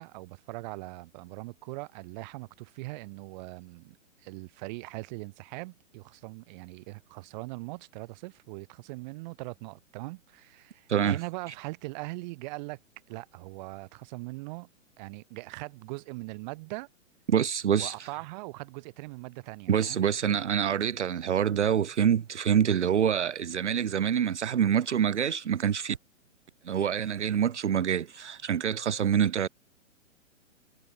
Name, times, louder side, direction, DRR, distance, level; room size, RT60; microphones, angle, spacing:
voice 1, 0.0-12.8 13.1-14.7 15.0-16.9 17.7-20.1, right 23 dB, 35° right, 6.7 m, -41 dB
voice 2, 17.3-18.1 19.7-26.0 26.6-29.5, right 8 dB, 60° right, 1.0 m, -26 dB
figure-of-eight pair, 120°, 39 cm